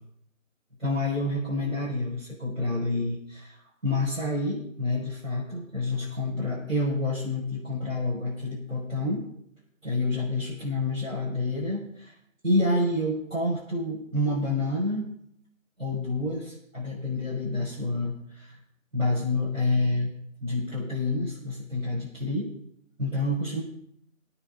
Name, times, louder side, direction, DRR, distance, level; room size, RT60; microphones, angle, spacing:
voice 1, 0.8-3.6 3.8-9.2 9.8-12.1 12.4-15.1 15.8-18.5 18.9-20.1 20.4-22.5 23.0-23.6, left 2 dB, 70° right, -6 dB, 5.7 m, -28 dB
21.0 x 8.9 x 3.9 m, 0.71 s
figure-of-eight pair, 180°, 41 cm